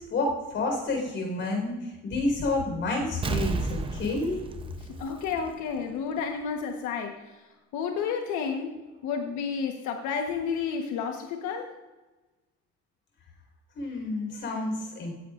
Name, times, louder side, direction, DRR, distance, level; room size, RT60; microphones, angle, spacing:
voice 1, 0.0-4.4 13.8-15.1, left 2 dB, 40° left, 1 dB, 4.4 m, -29 dB
Explosion, 3.2-5.8 6.2-6.3, right 3 dB, 20° right, 0.7 m, -32 dB
voice 2, 5.0-7.1 7.7-8.7 9.0-11.7, left 6 dB, 90° left, 3 dB, 1.3 m, -31 dB
17.0 x 15.0 x 2.5 m, 1.2 s
cardioid pair, 170°, 29 cm